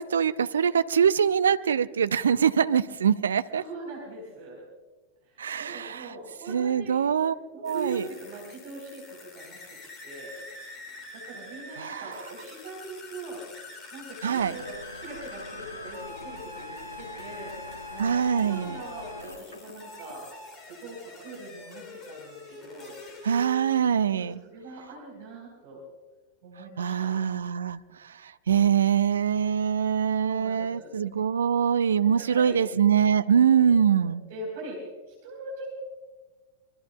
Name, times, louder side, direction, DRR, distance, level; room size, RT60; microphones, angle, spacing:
voice 1, 0.0-3.6 5.4-6.1 6.5-7.3 7.6-8.1 11.8-12.1 14.2-14.5 18.0-18.8 23.2-24.4 26.8-27.8 28.5-34.2, right 7 dB, 70° right, 14 dB, 0.5 m, -23 dB
voice 2, 3.5-4.6 5.3-7.0 7.5-9.8 10.0-10.4 11.1-13.4 13.9-20.3 20.7-23.0 24.1-25.8 26.4-27.2 30.2-30.9 32.0-32.6 33.5-34.8 35.1-35.7, right 2 dB, 50° right, -1 dB, 4.0 m, -42 dB
sound 1, 7.6-23.8, left 2 dB, 30° left, 3.0 m, -45 dB
sound 2, 14.3-19.4, left 1 dB, 85° left, 0.6 m, -43 dB
Telephone, 19.1-20.3, left 2 dB, 60° left, 4.0 m, -48 dB
25.5 x 22.5 x 2.3 m, 1.2 s
figure-of-eight pair, 90°, 0 cm